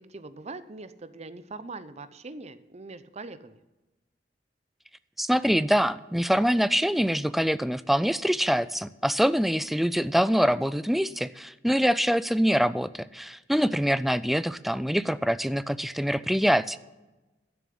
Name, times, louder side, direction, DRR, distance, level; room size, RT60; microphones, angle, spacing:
voice 1, 0.0-3.6, right 3 dB, 40° right, 13 dB, 0.7 m, -42 dB
voice 2, 5.2-16.8, equal, ahead, 15 dB, 0.3 m, -24 dB
12.0 x 7.0 x 7.8 m, 1.1 s
head